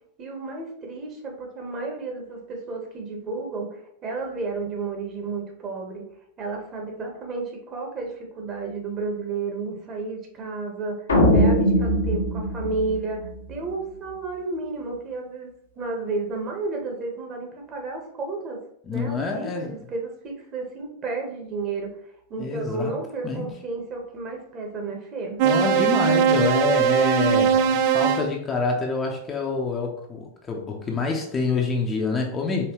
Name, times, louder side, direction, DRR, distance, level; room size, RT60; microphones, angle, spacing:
voice 1, 0.2-6.0 6.4-11.0 11.3-15.5 15.8-18.6 18.9-21.9 22.3-25.4, right 3 dB, 30° right, 1 dB, 1.2 m, -32 dB
sound 1, 11.1-13.6, equal, 70° left, 0.9 m, -21 dB
voice 2, 18.8-19.7 22.4-22.9 23.2-23.5 25.4-32.7, left 4 dB, 20° left, 1 dB, 0.7 m, -26 dB
sound 2, 25.4-28.3, right 8 dB, 45° right, 0.4 m, -20 dB
4.5 x 3.1 x 3.0 m, 0.70 s
figure-of-eight pair, 90°, 0 cm